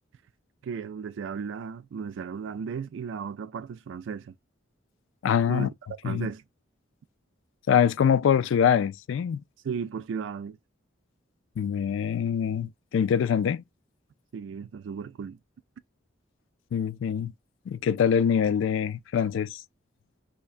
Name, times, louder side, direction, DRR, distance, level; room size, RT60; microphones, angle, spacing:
voice 1, 0.6-4.3 5.5-6.4 9.6-10.6 14.3-15.4, right 6 dB, 70° right, 0.3 m, -35 dB
voice 2, 5.2-5.7 6.0-6.3 7.7-9.4 11.6-13.6 16.7-17.3 17.7-19.6, left 8 dB, 75° left, 0.3 m, -24 dB
5.6 x 2.2 x 2.4 m
head